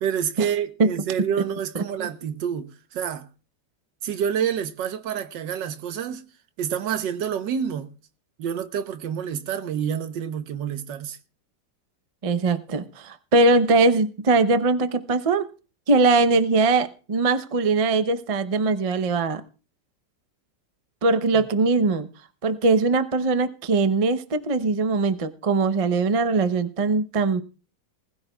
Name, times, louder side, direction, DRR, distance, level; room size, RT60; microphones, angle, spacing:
voice 1, 0.0-3.3 4.0-6.2 6.6-7.9 8.4-11.2 21.4-21.5, right 8 dB, 90° right, 1.6 m, -28 dB
voice 2, 1.7-2.1 12.2-15.5 15.9-19.4 21.0-22.1 22.4-27.4, right 3 dB, 50° right, 0.4 m, -21 dB
20.0 x 14.0 x 2.3 m
omnidirectional pair, 1.9 m